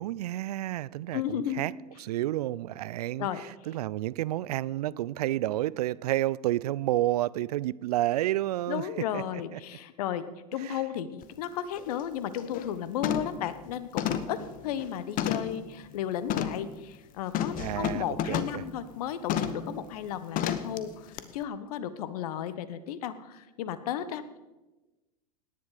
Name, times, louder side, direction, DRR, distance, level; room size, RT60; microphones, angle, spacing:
voice 1, 0.0-1.7 2.0-8.9 9.1-9.2 9.5-9.6 10.6-10.8 17.6-18.6, right 15 dB, 70° right, 0.5 m, -30 dB
voice 2, 1.1-1.6 3.2-3.4 8.7-24.4, left 10 dB, 65° left, 1.1 m, -34 dB
sound 1, 11.2-11.3 11.8-12.0 12.4-12.7 13.0-13.4 14.0-15.6 16.3-16.7 17.3-18.6 19.3-19.7 20.4-20.8 21.2-21.3, left 9 dB, 40° left, 1.1 m, -31 dB
17.5 x 10.5 x 4.9 m
hypercardioid pair, 90°, 21 cm